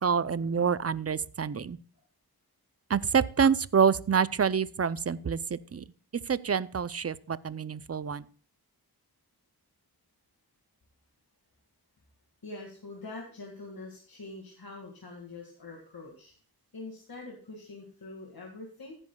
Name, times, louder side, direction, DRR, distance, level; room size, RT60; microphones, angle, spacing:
voice 1, 0.0-1.8 2.9-5.8 6.3-8.2, right 6 dB, 40° right, 18 dB, 0.5 m, -27 dB
voice 2, 12.4-16.3 16.7-19.0, left 2 dB, 65° left, 0 dB, 2.1 m, -44 dB
15.0 x 9.8 x 2.3 m, 0.43 s
wide cardioid pair, 65°, 38 cm